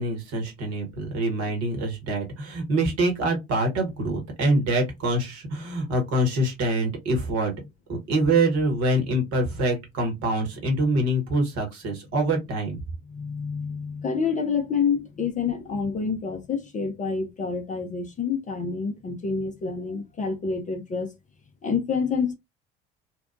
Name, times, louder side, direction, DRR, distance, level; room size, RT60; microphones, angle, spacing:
voice 1, 0.0-7.5 7.9-12.8, right 1 dB, 50° right, 1.2 m, -25 dB
voice 2, 13.1-21.1 21.6-22.3, left 5 dB, 25° left, 0.5 m, -28 dB
2.8 x 2.2 x 2.4 m
figure-of-eight pair, 55°, 32 cm